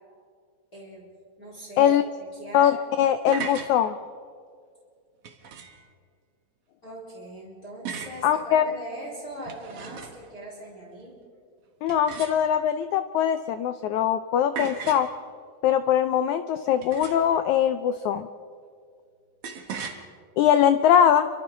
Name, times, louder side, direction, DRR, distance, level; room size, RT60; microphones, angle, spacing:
voice 1, 0.7-1.1 1.4-2.0 2.3-2.7 6.8-11.2, right 1 dB, 25° left, -4 dB, 4.5 m, -40 dB
voice 2, 2.5-4.0 8.2-8.6 11.8-15.1 15.6-18.3 20.4-21.3, left 9 dB, 90° left, 10 dB, 1.6 m, -21 dB
sound 1, 3.0-3.7 5.2-5.9 7.9-8.2 9.3-10.3 11.9-12.7 14.6-15.1 16.8-17.4 19.4-20.0, right 6 dB, 50° right, 2.0 m, -37 dB
29.5 x 24.5 x 3.8 m, 2.2 s
omnidirectional pair, 4.1 m